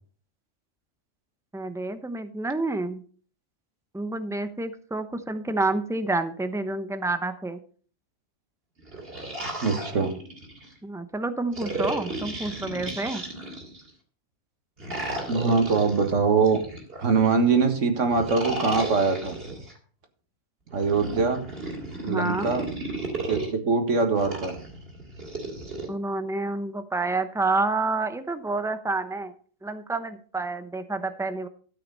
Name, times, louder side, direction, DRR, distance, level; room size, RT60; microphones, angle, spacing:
voice 1, 1.5-3.0 3.9-7.6 10.8-13.2 22.1-22.5 25.9-29.3 29.6-31.5, right 2 dB, 5° right, 10 dB, 0.4 m, -29 dB
sound 1, 8.8-10.7 11.5-13.9 14.8-17.3 18.1-19.7 20.7-23.5 24.2-25.9, right 2 dB, 45° right, 2.8 m, -34 dB
voice 2, 9.6-10.1 15.3-16.6 17.0-19.4 20.7-21.5 22.0-22.7 23.3-24.6, right 4 dB, 60° right, 6 dB, 1.8 m, -23 dB
13.0 x 6.0 x 5.4 m, 0.43 s
omnidirectional pair, 1.4 m